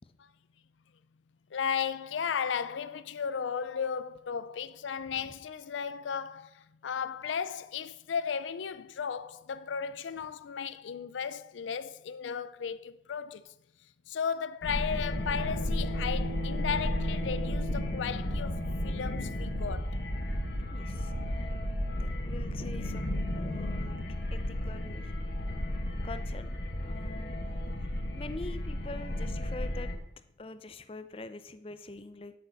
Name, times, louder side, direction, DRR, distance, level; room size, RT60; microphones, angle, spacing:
voice 1, 1.5-13.5 14.1-20.0, left 7 dB, 90° left, 0.4 m, -35 dB
sound 1, 14.6-30.0, left 1 dB, 65° left, 1.1 m, -34 dB
sound 2, 15.2-23.6, right 1 dB, 55° right, 0.8 m, -39 dB
voice 2, 20.7-24.0 24.3-25.1 26.0-26.6 26.8-27.4 27.8-29.9 30.4-32.3, left 2 dB, 30° left, 0.5 m, -45 dB
12.5 x 6.6 x 4.0 m
head